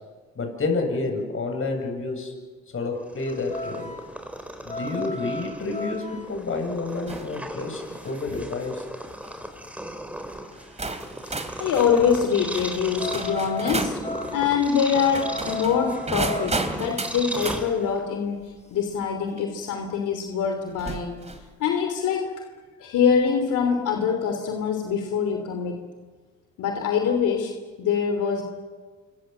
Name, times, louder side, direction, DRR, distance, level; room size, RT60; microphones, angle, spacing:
voice 1, 0.4-2.3 2.7-3.9 4.6-8.8, left 3 dB, 45° left, 4 dB, 7.7 m, -29 dB
Purr, 3.0-18.2, right 1 dB, 5° right, 4.1 m, -37 dB
sound 1, 3.3-10.4 10.6-19.1, left 3 dB, 20° left, 3.9 m, -37 dB
sound 2, 7.1-7.4 7.9-8.2 9.0-9.3 10.2-10.3 10.8-14.0 15.0-17.6 19.4-19.5 20.8-21.5, right 3 dB, 20° right, 2.9 m, -33 dB
voice 2, 11.6-13.9 14.3-18.4 18.7-21.2 21.6-22.3 22.8-25.8 26.6-28.4, left 7 dB, 85° left, 4 dB, 3.1 m, -24 dB
27.0 x 24.0 x 7.5 m, 1.4 s
cardioid pair, 90°, 30 cm